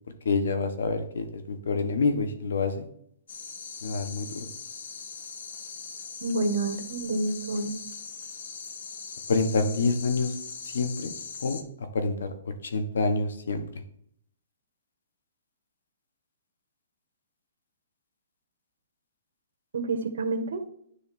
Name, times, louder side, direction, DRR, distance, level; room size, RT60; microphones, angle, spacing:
voice 1, 0.2-2.8 3.8-4.5 9.3-10.4 10.6-11.1 11.4-11.6 11.9-12.3 12.6-13.6, left 3 dB, 85° left, 8 dB, 1.2 m, -27 dB
sound 1, 3.3-11.6, left 5 dB, 70° left, 0.9 m, -40 dB
voice 2, 6.2-7.7 19.7-20.6, right 2 dB, 75° right, 8 dB, 1.1 m, -28 dB
9.9 x 3.4 x 4.2 m, 0.67 s
hypercardioid pair, 165°, 0 cm